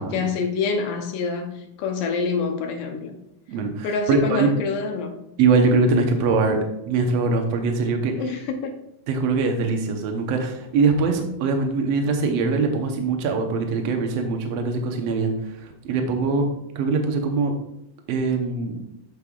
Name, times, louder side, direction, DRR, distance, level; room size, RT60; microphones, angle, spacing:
voice 1, 0.1-3.2 3.8-5.2 8.2-8.8, left 5 dB, 75° left, 4 dB, 2.3 m, -26 dB
voice 2, 3.5-4.5 5.4-6.6 6.9-8.1 9.1-15.6 15.8-16.5 16.8-17.5 18.1-18.8, right 4 dB, 65° right, 4 dB, 1.7 m, -22 dB
13.0 x 5.4 x 2.4 m, 0.83 s
omnidirectional pair, 4.0 m